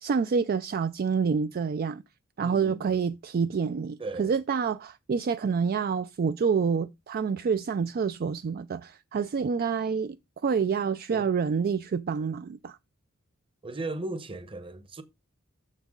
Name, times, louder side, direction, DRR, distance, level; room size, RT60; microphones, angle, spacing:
voice 1, 0.0-2.0 2.4-10.2 10.4-12.8, right 6 dB, 45° right, 0.3 m, -27 dB
voice 2, 2.4-3.1 4.0-4.4 11.1-11.3 13.6-15.0, right 2 dB, 25° right, 1.0 m, -37 dB
7.1 x 6.7 x 3.7 m
head